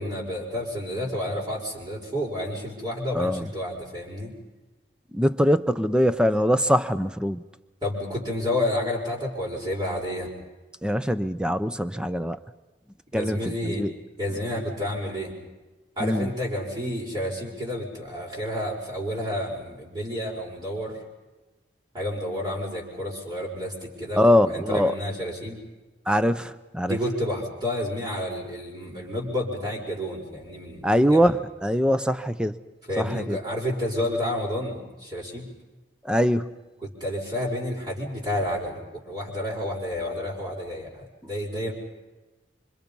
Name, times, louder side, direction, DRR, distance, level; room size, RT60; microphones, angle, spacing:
voice 1, 0.0-4.3 7.8-10.3 13.1-13.8 14.2-15.3 16.0-21.0 21.9-25.6 26.8-31.3 32.9-35.5 36.8-41.7, left 1 dB, 25° right, -4 dB, 5.4 m, -30 dB
voice 2, 3.1-3.5 5.1-7.4 10.8-12.4 13.1-13.9 16.0-16.3 24.2-24.9 26.1-27.0 30.8-32.6 33.0-33.4 36.0-36.5, equal, 5° right, 12 dB, 0.7 m, -22 dB
27.0 x 26.0 x 5.5 m, 1.1 s
head